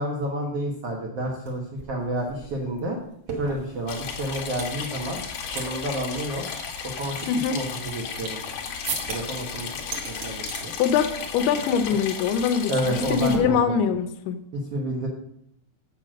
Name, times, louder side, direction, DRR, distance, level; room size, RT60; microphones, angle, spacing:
voice 1, 0.0-3.0 3.3-5.2 5.5-6.5 6.9-8.4 8.9-9.7 10.0-10.7 12.7-13.7 14.7-15.1, right 1 dB, 75° right, -1 dB, 1.4 m, -30 dB
sound 1, 1.5-1.6 1.8-4.8 5.2-5.7 5.9-6.0 6.5-8.5 8.8-9.4 9.8-10.6 11.0-11.3 11.6-11.8 12.1-12.4 13.3-14.1, right 4 dB, 55° right, 1.7 m, -36 dB
sound 2, 3.9-13.4, left 6 dB, 65° left, 1.9 m, -34 dB
voice 2, 7.3-7.6 10.8-14.4, left 7 dB, 85° left, 8 dB, 2.6 m, -23 dB
7.6 x 6.9 x 6.3 m, 0.75 s
omnidirectional pair, 4.6 m